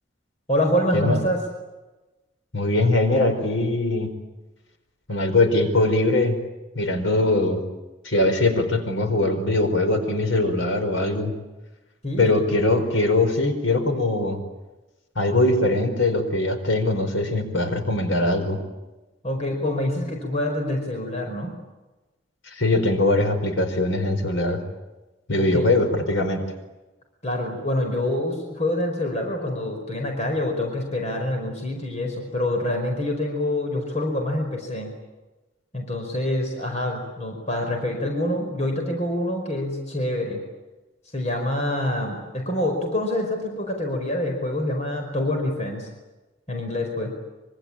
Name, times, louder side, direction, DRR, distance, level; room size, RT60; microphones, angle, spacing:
voice 1, 0.5-1.4 12.0-12.4 19.2-21.5 25.3-25.7 27.2-34.9 35.7-40.4 41.1-45.9 46.5-47.1, left 1 dB, 35° left, 2 dB, 5.1 m, -26 dB
voice 2, 2.5-4.1 5.1-6.4 6.7-7.6 8.0-11.3 12.2-14.4 15.1-18.6 22.5-24.6 25.3-26.4, left 2 dB, 85° left, 7 dB, 4.7 m, -21 dB
25.5 x 25.5 x 8.9 m, 1.1 s
head